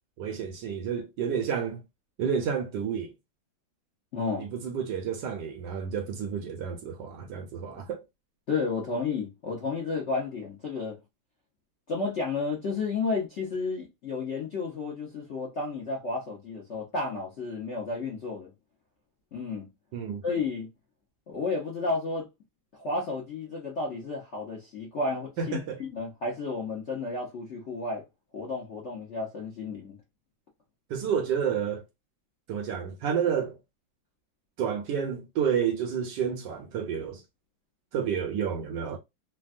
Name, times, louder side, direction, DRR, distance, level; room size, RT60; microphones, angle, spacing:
voice 1, 0.2-1.8 2.2-3.1 4.4-8.0 19.9-20.2 25.4-25.8 30.9-31.9 32.5-33.6 34.6-37.2 37.9-39.0, right 7 dB, 75° right, 1.1 m, -30 dB
voice 2, 4.1-4.5 8.5-11.0 11.9-18.5 19.3-19.7 20.2-20.7 21.3-22.3 22.7-28.0 28.3-30.0, left 3 dB, 55° left, 0.7 m, -32 dB
3.4 x 2.2 x 2.5 m
omnidirectional pair, 2.2 m